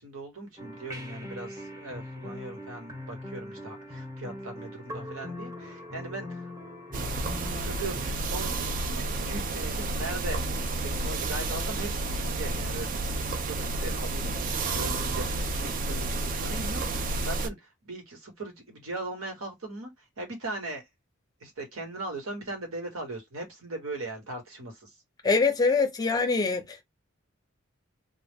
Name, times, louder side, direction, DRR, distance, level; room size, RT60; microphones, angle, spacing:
voice 1, 0.0-6.5 7.4-10.5 10.8-14.3 14.6-17.6 17.8-20.8 21.4-24.9, right 2 dB, 85° right, 1.2 m, -39 dB
sound 1, 0.6-8.1, left 1 dB, 15° right, 0.7 m, -41 dB
sound 2, 6.9-17.5, right 2 dB, 40° right, 0.4 m, -30 dB
voice 2, 25.2-26.8, left 4 dB, 20° left, 0.5 m, -24 dB
2.2 x 2.0 x 3.4 m
head